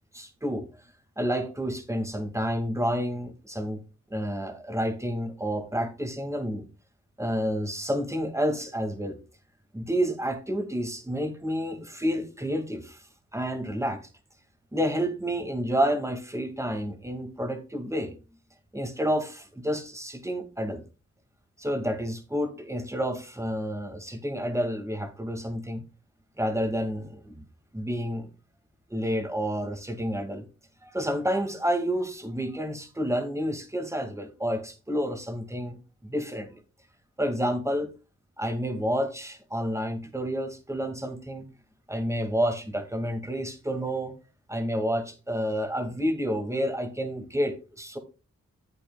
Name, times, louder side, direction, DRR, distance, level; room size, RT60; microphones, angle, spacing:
voice 1, 0.1-0.7 1.2-3.8 4.1-6.7 7.2-9.2 9.7-13.0 13.3-14.0 14.7-18.2 18.7-20.8 21.6-25.8 26.4-27.4 27.7-28.3 28.9-30.4 30.8-36.6 37.2-37.9 38.4-41.5 41.9-44.1 44.5-48.0, equal, 10° right, 6 dB, 2.2 m, -29 dB
11.0 x 8.4 x 2.3 m, 0.32 s
cardioid pair, 50°, 29 cm